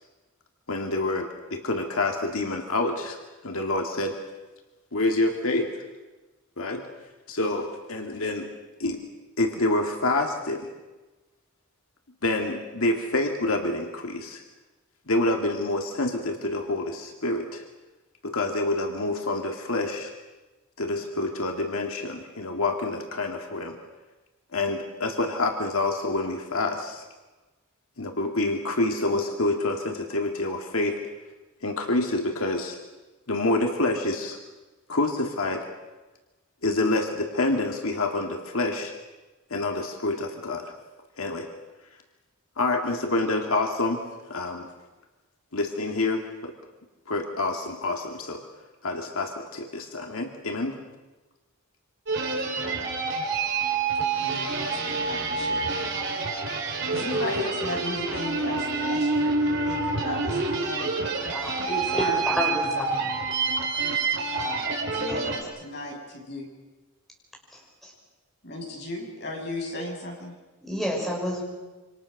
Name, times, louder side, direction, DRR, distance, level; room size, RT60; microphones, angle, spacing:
voice 1, 0.7-3.2 3.4-4.1 4.9-5.7 6.6-6.8 7.3-8.5 8.8-9.0 9.4-10.7 12.2-14.4 15.1-17.6 18.2-20.1 20.8-23.8 24.5-27.1 28.0-31.0 31.6-32.8 33.3-34.4 34.9-35.6 36.6-38.9 39.5-40.7 41.2-41.5 42.6-44.0 44.3-44.7 45.5-46.5 47.1-48.4 48.8-50.8, left 2 dB, 75° left, 3 dB, 2.1 m, -27 dB
sound 1, 52.1-65.4, right 4 dB, 55° right, 4.4 m, -27 dB
voice 2, 54.2-55.9 56.9-61.2 61.6-62.6 64.3-66.5 68.4-70.3, left 1 dB, 50° left, 0 dB, 6.8 m, -35 dB
voice 3, 61.9-63.1 65.0-65.3 67.5-67.9 70.6-71.4, equal, ahead, -2 dB, 5.6 m, -30 dB
27.5 x 25.5 x 6.5 m, 1.2 s
head